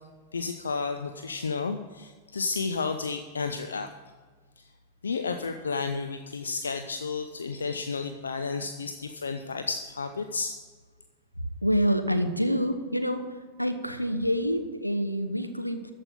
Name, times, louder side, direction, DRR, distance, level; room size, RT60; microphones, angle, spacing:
voice 1, 0.3-3.9 4.6-4.7 5.0-10.5, left 4 dB, 75° left, 7 dB, 0.6 m, -32 dB
voice 2, 11.6-13.2 13.6-15.9, equal, 90° left, 7 dB, 0.9 m, -27 dB
13.5 x 5.4 x 8.4 m, 1.4 s
figure-of-eight pair, 90°, 0 cm